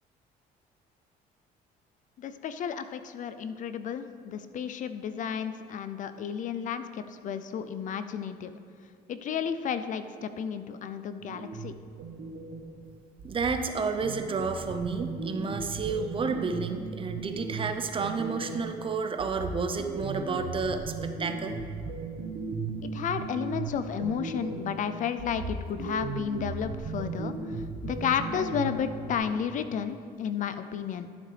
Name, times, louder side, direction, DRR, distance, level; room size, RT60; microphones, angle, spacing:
voice 1, 2.2-8.5 9.1-11.7 22.8-27.3 27.8-31.1, left 7 dB, 50° left, 11 dB, 0.4 m, -32 dB
sound 1, 11.2-12.8 13.2-18.8 19.2-24.8 25.2-29.2, right 4 dB, 75° right, 1.1 m, -37 dB
voice 2, 13.2-21.6, right 4 dB, 30° right, 7 dB, 0.6 m, -31 dB
12.0 x 7.3 x 3.3 m, 2.2 s
cardioid pair, 110°, 17 cm